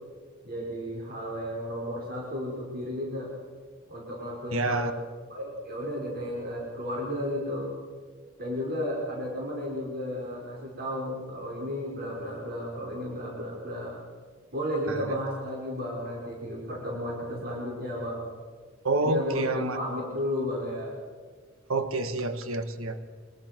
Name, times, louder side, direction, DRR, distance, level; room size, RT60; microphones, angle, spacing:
voice 1, 0.4-3.3 3.9-4.9 5.3-7.7 8.4-14.0 14.5-18.3 19.0-20.9, equal, 50° right, -3 dB, 5.5 m, -33 dB
voice 2, 4.5-4.9 14.9-15.2 18.8-19.8 21.7-23.0, right 2 dB, 85° right, 9 dB, 1.5 m, -28 dB
25.5 x 20.5 x 6.1 m, 1.5 s
head